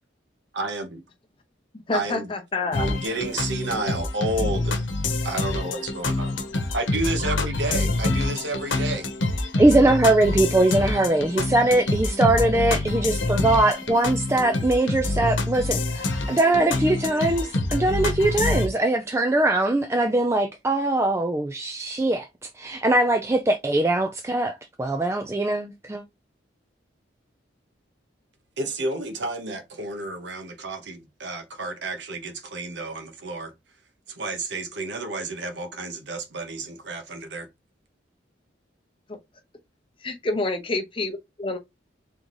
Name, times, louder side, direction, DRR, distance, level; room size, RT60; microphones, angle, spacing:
voice 1, 0.5-1.0 1.9-2.3 2.8-4.9 5.2-6.4 6.7-9.1 28.6-33.5 34.1-37.5, right 2 dB, 70° right, 1.0 m, -31 dB
voice 2, 1.9-3.0 39.1-39.2 40.0-41.6, left 3 dB, 25° left, 0.7 m, -28 dB
sound 1, 2.7-18.7, left 2 dB, 85° left, 1.0 m, -26 dB
voice 3, 9.6-22.3 22.6-26.0, right 2 dB, 15° right, 0.3 m, -21 dB
3.9 x 3.6 x 3.1 m
head